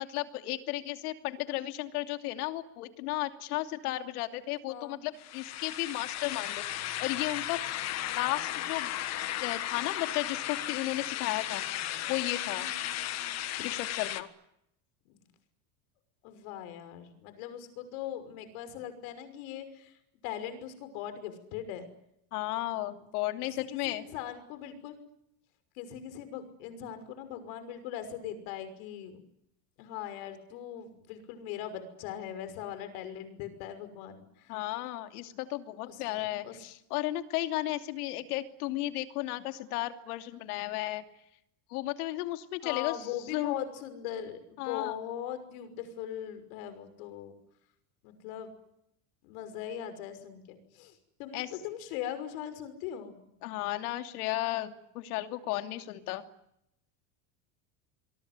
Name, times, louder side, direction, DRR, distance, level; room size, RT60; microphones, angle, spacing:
voice 1, 0.0-6.6 7.0-7.6 8.1-8.9 9.4-12.7 13.6-14.3 22.3-24.0 34.5-41.0 41.7-42.9 43.3-43.5 44.6-44.9 51.3-51.5 53.4-56.2, left 16 dB, 85° left, 8 dB, 2.8 m, -34 dB
voice 2, 4.7-5.0 12.2-13.4 15.1-15.2 16.2-20.0 20.2-21.9 23.4-25.0 25.7-29.2 29.8-34.6 35.9-36.6 42.6-47.3 48.0-48.5 49.2-53.4, left 10 dB, 65° left, 10 dB, 5.9 m, -40 dB
sound 1, 5.2-14.2, left 13 dB, 35° left, 1.6 m, -35 dB
26.0 x 23.0 x 9.7 m, 0.79 s
cardioid pair, 160°, 44 cm